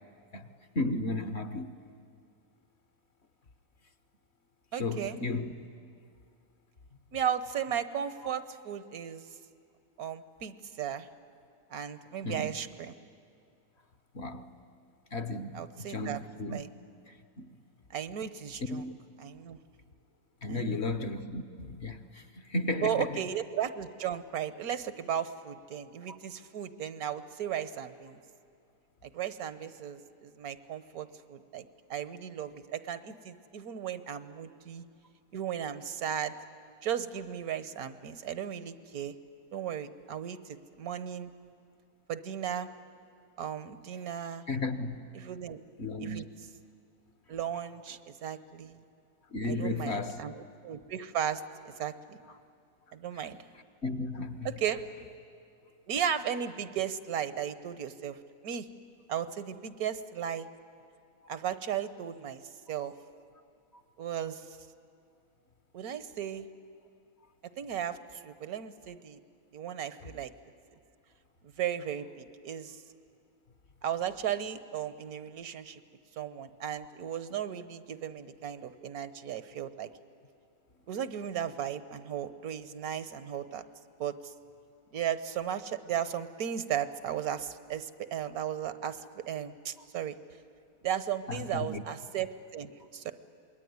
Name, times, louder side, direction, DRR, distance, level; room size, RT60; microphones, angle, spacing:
voice 1, 0.7-1.8 4.7-5.5 8.2-8.3 12.2-12.5 14.1-14.5 15.1-16.6 17.1-17.5 18.7-18.9 20.4-23.2 26.1-26.2 44.5-45.0 45.8-46.2 49.3-50.2 53.8-54.5 91.3-91.8, left 2 dB, 50° left, 1.2 m, -34 dB
voice 2, 4.7-5.2 7.1-9.3 10.0-11.1 11.7-12.9 15.5-16.2 16.5-16.7 17.9-18.8 19.2-19.6 20.5-20.8 22.8-28.2 29.0-34.8 35.3-36.3 36.8-39.2 39.5-41.3 42.1-42.7 43.4-44.5 45.1-45.6 46.0-46.3 47.3-48.8 49.5-51.4 51.7-52.2 52.9-53.4 54.4-54.8 55.9-58.2 58.4-58.7 59.1-60.5 61.3-62.9 64.0-64.6 65.7-66.5 67.6-68.0 68.2-69.2 69.5-70.3 71.6-72.8 73.8-75.8 76.2-79.9 80.9-83.6 84.0-84.3 84.9-90.1 90.8-93.1, right 9 dB, 75° right, 1.4 m, -35 dB
27.0 x 21.0 x 9.6 m
omnidirectional pair, 1.6 m